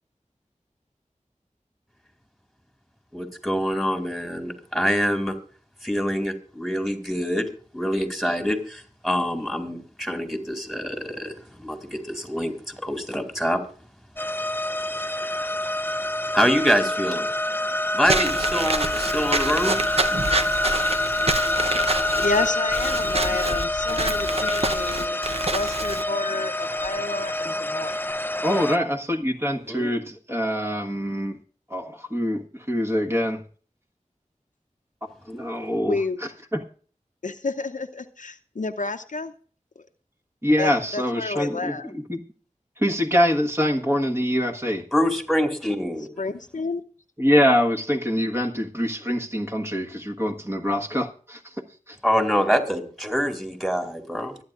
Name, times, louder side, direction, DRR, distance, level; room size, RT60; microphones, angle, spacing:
voice 1, 3.1-5.4 5.8-7.5 7.7-13.6 16.3-17.3 17.9-19.8 29.7-29.9 44.9-46.1 52.0-54.4, equal, ahead, 6 dB, 2.7 m, -25 dB
sound 1, 14.2-28.8, left 1 dB, 15° left, 0.5 m, -26 dB
Walk footsteps / Squeak, 18.1-26.0, right 2 dB, 50° right, 0.8 m, -27 dB
voice 2, 22.2-28.1 35.9-36.2 37.2-39.3 39.8-39.9 40.6-41.9 46.2-46.8, left 3 dB, 75° left, 8 dB, 0.8 m, -30 dB
voice 3, 28.4-31.4 31.7-33.4 35.0-36.0 36.5-36.6 40.4-42.2 42.8-44.8 47.2-51.5 51.9-52.0, equal, 20° right, 1 dB, 1.5 m, -24 dB
24.5 x 9.3 x 2.5 m, 0.42 s
wide cardioid pair, 50°, 13 cm